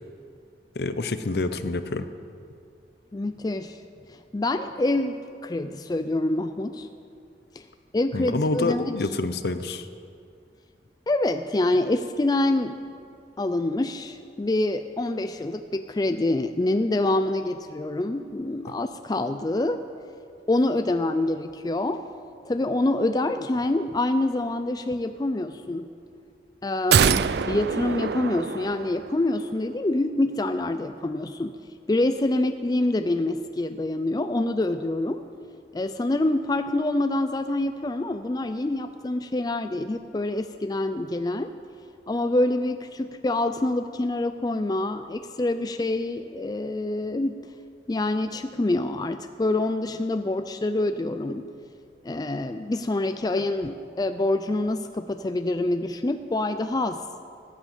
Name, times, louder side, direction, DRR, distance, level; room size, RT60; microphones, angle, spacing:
voice 1, 0.7-2.0 8.1-9.9, left 2 dB, 65° left, 11 dB, 0.7 m, -27 dB
voice 2, 3.1-3.8 4.1-6.9 7.6-7.7 7.9-9.0 11.1-12.8 13.4-19.8 20.5-22.0 22.4-25.9 26.6-31.6 31.9-35.2 35.7-41.5 42.1-47.4 47.9-51.5 52.0-57.0, left 2 dB, 20° left, 9 dB, 0.4 m, -26 dB
sound 1, 26.9-29.3 29.6-29.7, right 7 dB, 70° right, 0.4 m, -24 dB
15.0 x 9.1 x 7.4 m, 2.4 s
head